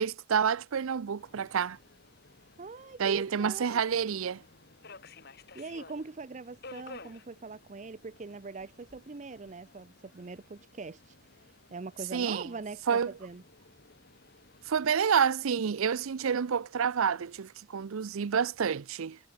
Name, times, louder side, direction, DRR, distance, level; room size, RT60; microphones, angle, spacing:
voice 1, 0.0-1.8 3.0-4.4 12.1-12.5 12.9-13.1 14.7-19.2, right 7 dB, 85° right, 0.5 m, -28 dB
Subway metro underground, 1.2-14.9, left 3 dB, 50° left, 2.6 m, -54 dB
voice 2, 2.6-3.8 5.5-13.4, right 3 dB, 35° right, 0.5 m, -42 dB
head